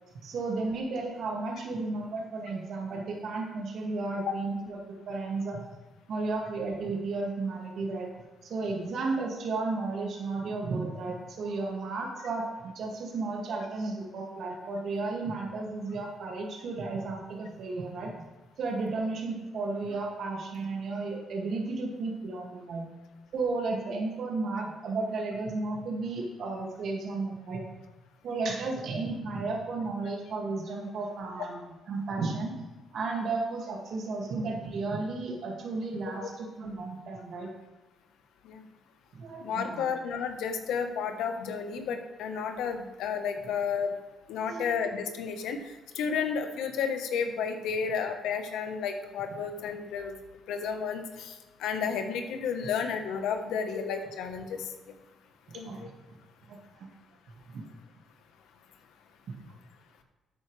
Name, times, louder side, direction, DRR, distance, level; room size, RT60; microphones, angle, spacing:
voice 1, 0.2-5.7 6.1-8.1 8.4-18.1 18.6-22.9 23.3-27.7 28.2-32.5 32.9-37.5 39.1-39.9 44.4-44.7 55.5-55.9 56.5-56.9 57.5-57.6, right 3 dB, 65° right, 0 dB, 2.2 m, -33 dB
voice 2, 39.4-43.9 44.3-45.6 45.9-50.1 50.5-51.3 51.6-54.6 55.5-55.9, left 6 dB, 85° left, 6 dB, 1.2 m, -32 dB
11.5 x 8.7 x 3.4 m, 1.2 s
supercardioid pair, 70°, 0 cm